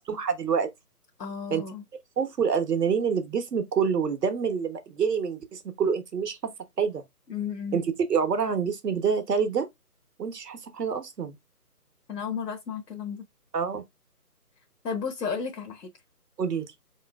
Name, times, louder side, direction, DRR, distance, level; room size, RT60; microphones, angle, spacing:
voice 1, 0.1-0.7 1.5-1.6 2.2-6.4 6.8-7.0 7.7-9.7 10.2-11.4 13.5-13.8 16.4-16.7, right 6 dB, 80° right, 1.1 m, -27 dB
voice 2, 1.2-1.8 7.3-7.8 12.1-13.2 14.8-15.9, left 6 dB, 85° left, 1.0 m, -33 dB
4.1 x 3.6 x 2.3 m
hypercardioid pair, 170°, 47 cm